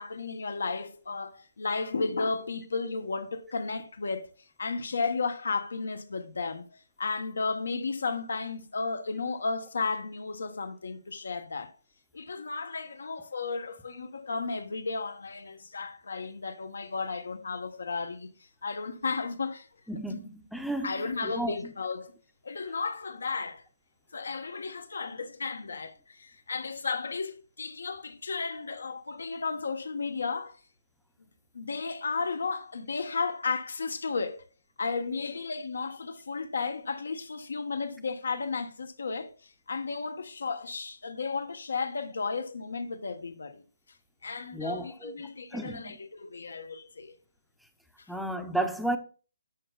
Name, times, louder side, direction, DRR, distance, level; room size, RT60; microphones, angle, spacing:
voice 1, 0.0-4.3 4.6-11.7 12.1-18.3 18.6-19.7 20.1-20.2 20.8-22.1 22.4-23.6 24.1-30.6 31.5-34.4 34.8-43.6 44.2-47.2, left 4 dB, 80° left, 1.2 m, -34 dB
voice 2, 19.9-20.9 21.2-21.6 44.5-45.9 48.1-49.0, right 1 dB, ahead, 0.6 m, -33 dB
10.5 x 6.9 x 2.4 m
hypercardioid pair, 170°, 0 cm